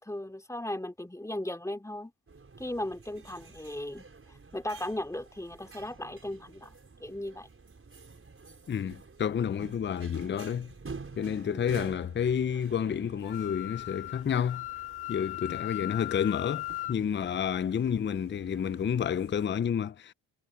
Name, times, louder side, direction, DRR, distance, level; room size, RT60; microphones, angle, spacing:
voice 1, 0.0-2.1 2.6-4.0 4.5-7.5 11.4-11.6, left 1 dB, 5° left, 2.7 m, -37 dB
sound 1, 2.3-19.5, right 4 dB, 30° right, 5.6 m, -49 dB
voice 2, 8.7-10.7 11.2-14.7 15.1-20.1, left 8 dB, 25° left, 0.5 m, -30 dB
Wind instrument woodwind instrument, 13.2-17.0, left 20 dB, 60° left, 1.5 m, -38 dB
cardioid pair, 75°, 45 cm